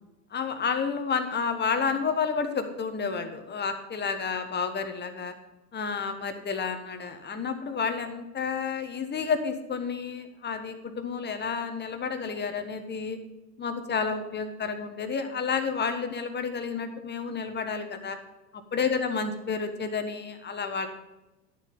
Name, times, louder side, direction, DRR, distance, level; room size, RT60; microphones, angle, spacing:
voice 1, 0.3-5.3 5.7-13.2 13.6-18.2 18.7-20.9, left 5 dB, 20° left, 7 dB, 1.3 m, -30 dB
11.0 x 7.4 x 5.4 m, 1.0 s
hypercardioid pair, 95°, 49 cm